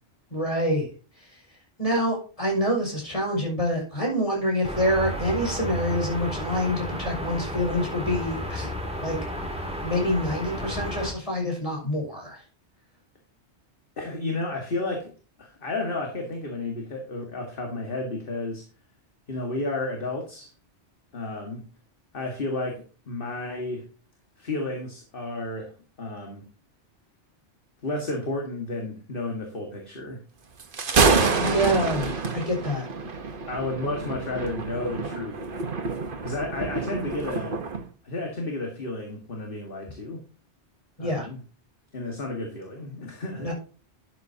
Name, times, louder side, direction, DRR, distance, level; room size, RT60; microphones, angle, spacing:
voice 1, 0.3-0.9 1.2-1.4 1.8-8.7 9.0-9.2 9.8-12.4 31.4-32.9 41.0-41.3 43.4-43.5, equal, 30° left, -1 dB, 6.3 m, -26 dB
sound 1, 4.6-11.1, equal, 5° right, 2.8 m, -32 dB
voice 2, 14.0-15.1 15.4-18.6 19.3-20.5 21.1-21.6 22.1-23.8 24.4-26.4 27.8-30.2 31.6-31.7 33.5-35.4 36.2-37.6 38.0-40.2 41.0-41.4 41.9-43.5, left 2 dB, 55° left, 2 dB, 2.1 m, -32 dB
Thunder, 30.6-37.8, right 4 dB, 50° right, 1.3 m, -27 dB
11.5 x 8.8 x 2.9 m, 0.37 s
omnidirectional pair, 1.1 m